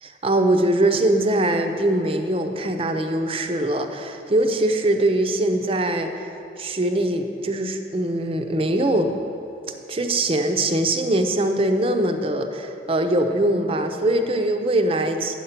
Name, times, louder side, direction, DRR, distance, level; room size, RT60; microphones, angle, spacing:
voice 1, 0.0-6.1 6.6-9.2 9.9-15.3, right 1 dB, 30° right, 6 dB, 0.5 m, -22 dB
8.7 x 7.4 x 5.7 m, 2.7 s
head